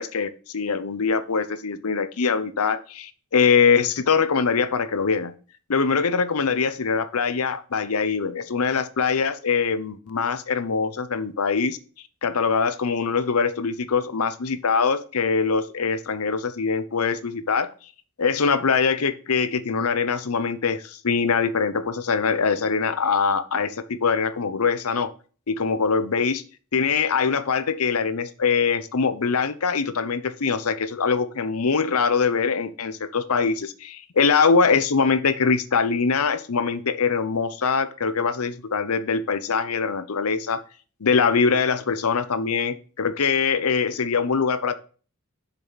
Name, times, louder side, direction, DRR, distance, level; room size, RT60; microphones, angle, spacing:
voice 1, 0.0-5.3 5.7-11.8 12.2-17.7 18.2-25.1 25.5-26.4 26.7-40.6 41.0-44.7, left 5 dB, 75° left, 13 dB, 0.7 m, -23 dB
7.4 x 6.8 x 4.0 m, 0.39 s
head